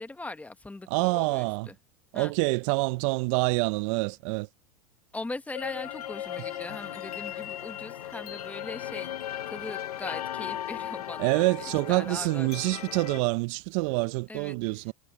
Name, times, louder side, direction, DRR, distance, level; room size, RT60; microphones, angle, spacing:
voice 1, 0.0-1.8 2.1-2.3 5.1-12.7 14.3-14.6, left 2 dB, 10° left, 1.3 m, -40 dB
voice 2, 0.9-1.7 2.1-4.5 11.2-14.9, right 27 dB, 60° right, 0.7 m, -26 dB
sound 1, 5.5-13.2, left 11 dB, 85° left, 0.8 m, -37 dB
hypercardioid pair, 100°, 19 cm